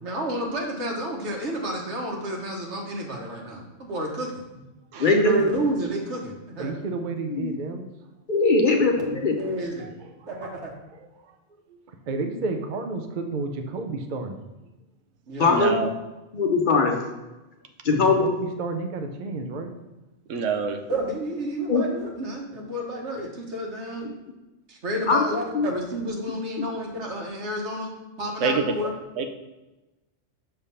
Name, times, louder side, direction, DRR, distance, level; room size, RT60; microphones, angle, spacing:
voice 1, 0.0-4.4 5.0-6.7 9.0-9.9 10.3-10.7 15.3-15.6 20.9-24.1 24.7-27.9 28.2-28.9, right 1 dB, 65° right, 0 dB, 1.5 m, -30 dB
voice 2, 5.0-5.4 7.4-7.6 8.3-9.3 15.4-15.7 16.3-17.0 17.8-18.3 21.7-21.8 25.1-25.7 26.6-26.7, left 3 dB, 50° left, 2 dB, 0.7 m, -21 dB
voice 3, 6.6-7.9 8.5-8.6 9.8-10.3 10.7-11.4 11.7-11.8 12.1-14.4 17.9-19.7, right 3 dB, 50° right, 5 dB, 0.7 m, -32 dB
voice 4, 15.5-15.9 20.3-20.8 28.4-28.7 29.2-29.3, right 4 dB, 85° right, 5 dB, 1.0 m, -25 dB
6.7 x 3.4 x 5.5 m, 1.0 s
omnidirectional pair, 1.2 m